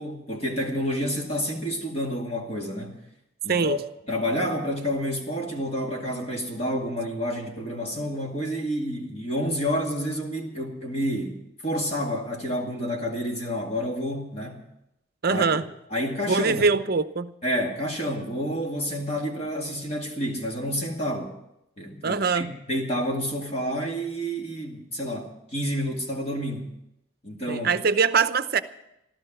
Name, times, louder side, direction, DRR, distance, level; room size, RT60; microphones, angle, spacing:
voice 1, 0.0-3.0 3.4-3.8 4.1-14.6 15.3-15.5 15.9-16.7 17.4-21.3 21.8-26.7 27.2-27.7, equal, 30° left, 1 dB, 2.2 m, -29 dB
voice 2, 15.2-15.6 16.3-17.3 22.0-22.5 27.5-28.6, right 5 dB, 45° right, 11 dB, 0.7 m, -23 dB
15.5 x 13.0 x 6.1 m, 0.83 s
head